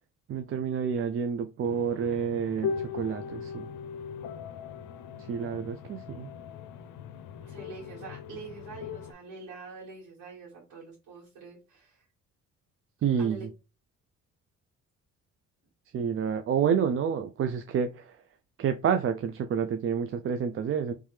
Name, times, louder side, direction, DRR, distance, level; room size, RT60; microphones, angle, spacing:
voice 1, 0.3-3.7 5.3-6.3 13.0-13.5 15.9-18.2 18.6-20.9, right 7 dB, 45° right, 0.4 m, -29 dB
sound 1, 1.6-9.1, left 6 dB, 85° left, 0.5 m, -39 dB
voice 2, 7.4-12.1 13.2-13.5, right 4 dB, 90° right, 2.2 m, -45 dB
3.3 x 3.2 x 3.2 m
cardioid pair, 90°, 30 cm